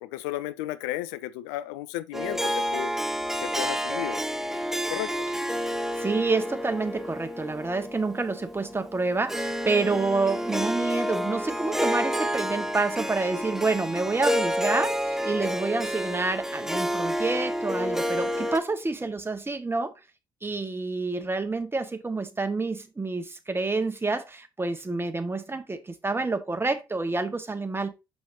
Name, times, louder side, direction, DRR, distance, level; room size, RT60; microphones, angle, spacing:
voice 1, 0.0-2.9 3.4-4.2 4.7-5.3, left 15 dB, 75° left, 0.5 m, -34 dB
Harp, 2.1-18.6, equal, 5° right, 1.2 m, -29 dB
voice 2, 5.9-19.9 20.4-27.9, right 3 dB, 20° right, 1.6 m, -28 dB
6.6 x 5.7 x 2.8 m
figure-of-eight pair, 40°, 11 cm